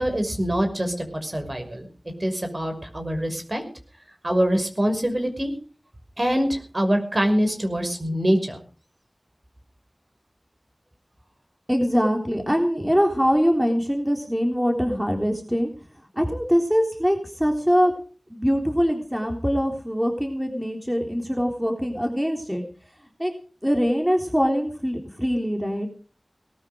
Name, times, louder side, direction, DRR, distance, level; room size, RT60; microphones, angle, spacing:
voice 1, 0.0-1.9 2.2-3.6 4.2-5.5 6.2-8.6, equal, 45° right, 5 dB, 5.9 m, -24 dB
voice 2, 11.7-15.7 16.2-17.9 18.3-22.6 23.2-23.3 23.6-25.9, equal, 10° right, 2 dB, 3.5 m, -23 dB
19.0 x 13.0 x 5.1 m, 0.40 s
wide cardioid pair, 45°, 0 cm